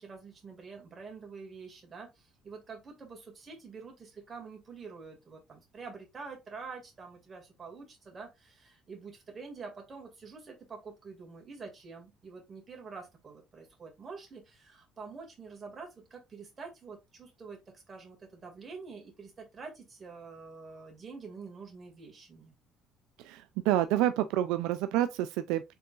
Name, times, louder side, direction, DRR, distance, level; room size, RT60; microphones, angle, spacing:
voice 1, 0.0-22.6, right 4 dB, 30° right, 2.2 m, -47 dB
voice 2, 23.2-25.6, right 13 dB, 85° right, 0.3 m, -28 dB
4.5 x 3.9 x 2.4 m
cardioid pair, 100°, 0 cm